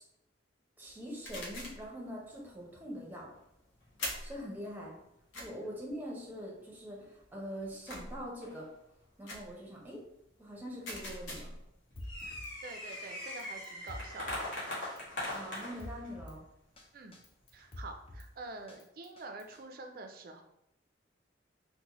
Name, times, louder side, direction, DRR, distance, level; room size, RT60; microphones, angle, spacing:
voice 1, 0.8-3.3 4.2-4.9 5.4-8.7 9.2-10.0 10.4-11.5 15.3-16.4, equal, 10° right, -3 dB, 0.7 m, -43 dB
sound 1, 1.2-1.9 4.0-4.4 5.3-5.5 7.9-8.3 9.3-9.5 10.8-11.6, left 1 dB, 80° left, 0.8 m, -41 dB
sound 2, 1.3-1.7 1.9-2.0 2.7-2.8 3.6-4.1 4.7-5.1 5.8-6.6 7.2-7.3 7.6-7.7 8.4-9.0 9.6-9.7 10.3-10.4 10.6-10.9 11.5-16.2 16.7-16.8 17.5-17.8, left 1 dB, 45° left, 1.2 m, -41 dB
Drum kit, 12.0-12.5 12.9-13.0 13.3-14.4 14.8-15.0 15.3-16.4 16.8-16.9 17.1-18.3 18.7-19.6, left 1 dB, 30° left, 0.4 m, -47 dB
voice 2, 12.2-14.6 16.9-17.1 17.5-20.4, right 2 dB, 50° right, 5 dB, 0.4 m, -47 dB
4.0 x 2.1 x 2.9 m, 0.82 s
head